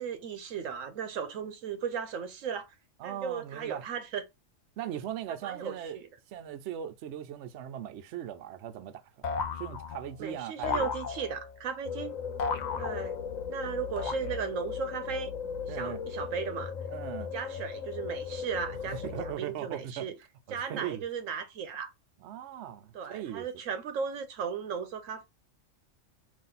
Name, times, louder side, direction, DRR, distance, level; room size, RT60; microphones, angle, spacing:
voice 1, 0.0-2.7 3.0-4.2 5.4-6.1 10.2-12.1 12.8-13.2 13.5-15.3 15.7-16.7 17.3-20.1 20.5-21.9 22.9-25.2, right 6 dB, 90° right, 1.1 m, -36 dB
voice 2, 3.0-3.9 4.8-6.0 6.3-10.9 15.7-16.0 16.9-17.3 18.9-20.1 20.5-21.0 22.2-23.5, right 10 dB, 70° right, 0.8 m, -39 dB
sound 1, 9.2-10.2 10.6-11.6 12.4-13.4 14.0-14.7, left 5 dB, 60° left, 0.5 m, -35 dB
sound 2, 11.8-19.3, left 7 dB, 85° left, 1.1 m, -38 dB
4.1 x 2.6 x 3.8 m
omnidirectional pair, 1.3 m